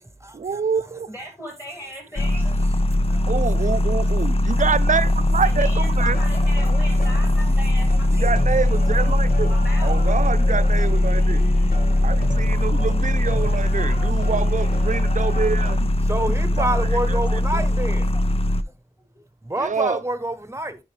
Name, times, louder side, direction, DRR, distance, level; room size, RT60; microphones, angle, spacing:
voice 1, 0.3-1.1 3.3-6.2 8.1-9.5 9.8-11.5 12.0-15.9 16.3-17.7 19.6-20.0, right 5 dB, 60° right, 0.4 m, -26 dB
voice 2, 1.1-2.6 5.4-8.4 9.5-10.1 11.7-11.8 12.2-12.9 16.2-17.7 18.1-18.2 19.1-19.2, equal, 15° left, 2.3 m, -39 dB
sound 1, 2.2-18.6, left 1 dB, 40° left, 0.5 m, -20 dB
sound 2, 6.0-15.7, equal, 80° left, 1.6 m, -37 dB
voice 3, 16.1-18.1 19.4-20.8, right 1 dB, 20° right, 0.9 m, -27 dB
10.5 x 4.0 x 3.2 m
wide cardioid pair, 40°, 14 cm